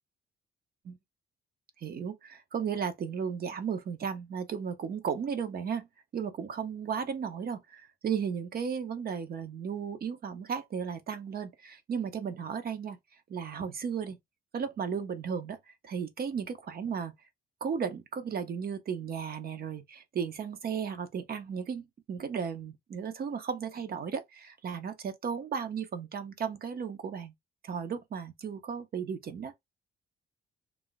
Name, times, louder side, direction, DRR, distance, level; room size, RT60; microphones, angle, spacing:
voice 1, 1.8-5.9 6.1-13.0 13.3-14.2 14.5-17.1 17.6-27.3 27.6-29.5, right 7 dB, 50° right, 0.7 m, -35 dB
2.4 x 2.1 x 3.8 m
cardioid pair, 90°, 20 cm